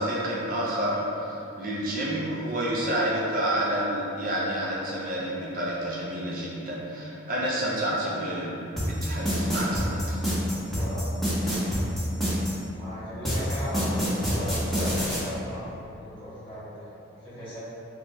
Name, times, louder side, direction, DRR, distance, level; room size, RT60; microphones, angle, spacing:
voice 1, 0.0-10.2, right 1 dB, 45° right, -5 dB, 0.5 m, -29 dB
sound 1, 8.8-12.5 13.3-15.2, equal, ahead, 1.0 m, -26 dB
voice 2, 10.7-11.6 12.8-16.9 17.2-17.6, equal, 25° left, -11 dB, 1.4 m, -37 dB
4.1 x 2.3 x 3.0 m, 2.8 s
head